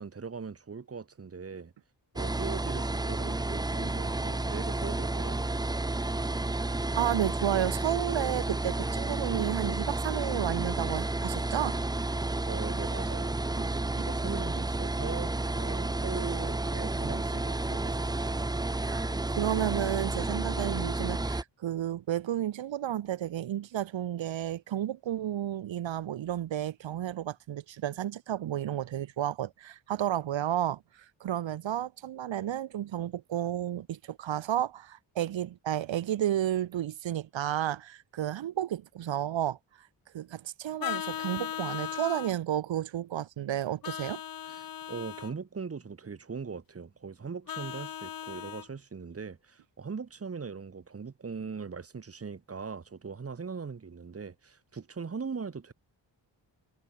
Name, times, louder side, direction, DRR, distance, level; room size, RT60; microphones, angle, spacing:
voice 1, 0.0-1.7 2.1-5.4 12.4-18.1 44.4-55.7, right 5 dB, 30° right, 2.6 m, -40 dB
sound 1, 2.2-21.4, right 2 dB, 10° right, 0.8 m, -31 dB
voice 2, 6.9-11.8 18.8-19.1 19.4-39.9 40.1-44.2, right 11 dB, 80° right, 1.6 m, -32 dB
Vehicle horn car horn honking, 40.8-42.3 43.8-45.3 47.5-48.7, left 10 dB, 50° left, 0.8 m, -37 dB
wide cardioid pair, 160°, 45 cm